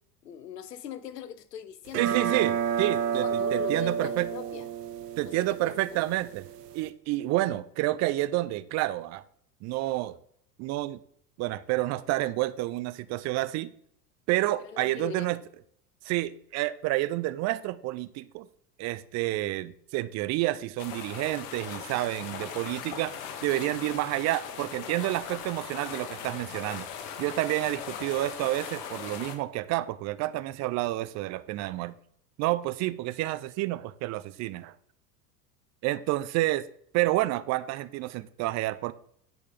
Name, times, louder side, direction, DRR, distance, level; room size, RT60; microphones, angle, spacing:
voice 1, 0.2-2.4 3.1-4.7 5.2-5.3 5.6-6.0 14.7-15.3, left 8 dB, 90° left, 0.7 m, -41 dB
sound 1, 1.9-6.9, right 8 dB, 80° right, 0.8 m, -30 dB
voice 2, 2.0-4.3 5.2-6.5 6.7-9.2 9.6-10.2 10.6-11.0 11.4-13.7 14.3-15.4 16.0-18.5 18.8-23.2 23.4-26.9 27.2-31.9 32.4-34.7 35.8-36.7 36.9-38.9, right 17 dB, 35° right, 0.4 m, -29 dB
sound 2, 20.8-29.4, left 7 dB, 60° left, 1.4 m, -39 dB
8.9 x 5.3 x 3.7 m
hypercardioid pair, 80°, 47 cm